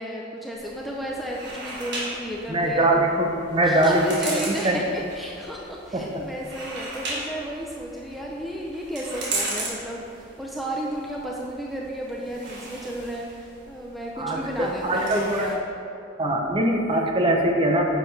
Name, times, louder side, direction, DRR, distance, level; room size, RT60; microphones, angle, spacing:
voice 1, 0.0-2.9 3.6-15.6, equal, ahead, -3 dB, 0.6 m, -33 dB
sound 1, 0.5-15.5, right 2 dB, 60° right, 1.6 m, -37 dB
voice 2, 2.5-4.8 5.9-6.1 14.2-15.5 16.2-17.8, right 1 dB, 25° right, 1 dB, 0.8 m, -22 dB
9.4 x 6.8 x 3.3 m, 2.7 s
head